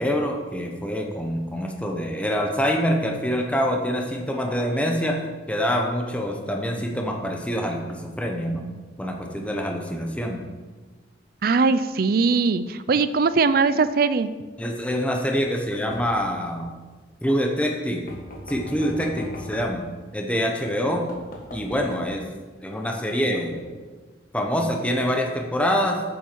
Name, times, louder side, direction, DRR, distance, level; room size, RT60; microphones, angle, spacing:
voice 1, 0.0-8.6 9.0-10.4 14.6-16.7 17.2-18.1 18.5-19.9 20.1-21.1 21.5-22.3 22.6-23.8 24.3-26.0, equal, 5° left, 2 dB, 0.9 m, -25 dB
voice 2, 11.4-14.3, right 4 dB, 55° right, 14 dB, 0.4 m, -20 dB
sound 1, 15.9-16.4 18.1-19.8 20.6-20.7 21.1-22.1, left 1 dB, 50° left, 1.5 m, -39 dB
9.0 x 7.5 x 4.6 m, 1.3 s
head